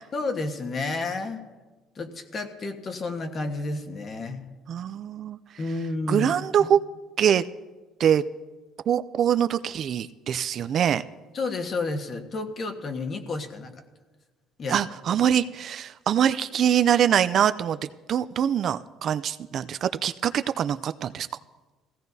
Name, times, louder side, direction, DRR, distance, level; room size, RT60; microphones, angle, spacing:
voice 1, 0.1-1.4 1.9-4.5 5.6-6.3 6.6-6.7 11.3-13.7 14.6-14.8, left 3 dB, 35° left, 6 dB, 1.3 m, -31 dB
voice 2, 4.7-5.4 6.1-6.8 7.2-7.4 8.0-8.2 8.9-11.0 14.7-17.8 18.1-21.3, right 9 dB, 45° right, 12 dB, 0.4 m, -23 dB
20.0 x 16.0 x 2.7 m, 1.2 s
cardioid pair, 130°, 0 cm